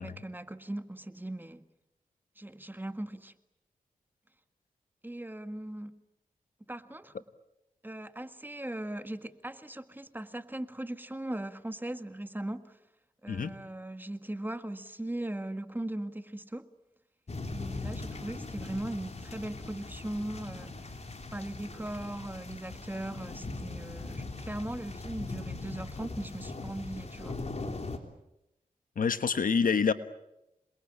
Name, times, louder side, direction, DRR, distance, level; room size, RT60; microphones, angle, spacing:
voice 1, 0.0-1.7 2.4-3.3 5.0-5.9 6.7-7.1 7.8-12.8 13.2-16.7 17.5-27.4, right 1 dB, 15° right, 10 dB, 1.8 m, -39 dB
sound 1, 17.3-28.0, left 3 dB, 50° left, 3.6 m, -40 dB
voice 2, 29.0-29.9, left 5 dB, 75° left, 11 dB, 1.4 m, -27 dB
27.5 x 22.0 x 8.7 m, 0.88 s
cardioid pair, 55°, 14 cm